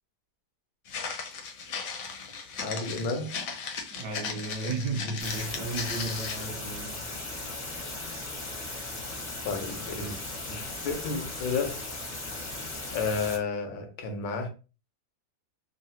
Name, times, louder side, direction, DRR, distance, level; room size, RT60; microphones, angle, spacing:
Walk footsteps, 0.9-6.5, left 5 dB, 65° left, 0.9 m, -37 dB
voice 1, 2.6-3.4 6.4-6.5 7.8-8.2 9.4-10.2 10.5-11.8 12.9-14.5, left 4 dB, 90° left, 1.5 m, -32 dB
voice 2, 3.9-7.0, right 3 dB, 70° right, 1.2 m, -34 dB
sound 1, 5.2-13.4, left 2 dB, 45° left, 0.6 m, -37 dB
3.8 x 2.0 x 2.7 m
omnidirectional pair, 2.0 m